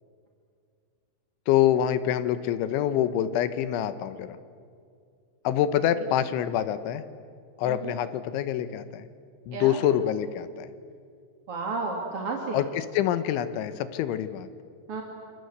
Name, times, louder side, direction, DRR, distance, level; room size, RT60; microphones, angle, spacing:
voice 1, 1.5-4.4 5.5-7.0 7.6-9.1 9.5-10.7 12.5-14.5, left 11 dB, 85° left, 12 dB, 3.4 m, -26 dB
voice 2, 7.6-7.9 9.5-9.8 11.5-12.6 14.9-15.0, right 3 dB, 40° right, 1 dB, 2.6 m, -32 dB
27.0 x 27.0 x 8.1 m, 2.3 s
omnidirectional pair, 5.4 m